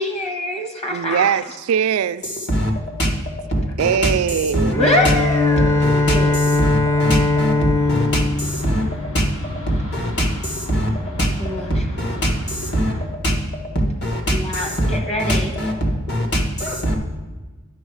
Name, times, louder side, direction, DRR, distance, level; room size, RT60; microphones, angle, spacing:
voice 1, 0.0-1.3 4.6-6.3 11.4-11.7 14.3-15.5, left 1 dB, 30° left, 1.3 m, -24 dB
voice 2, 0.9-2.2 3.8-4.8, right 8 dB, 75° right, 0.3 m, -20 dB
voice 3, 2.2-3.2 3.5-4.2 4.5-4.7 5.0-5.2 5.6-8.9 9.1-9.4 9.7-10.9 11.2-11.4 11.7-13.0 13.2-13.5 13.7-17.0, equal, 50° left, 1.5 m, -22 dB
Bowed string instrument, 4.7-9.8, left 3 dB, 10° left, 0.4 m, -20 dB
sound 1, 7.8-13.1, right 1 dB, 65° left, 2.1 m, -33 dB
10.0 x 6.3 x 4.7 m
head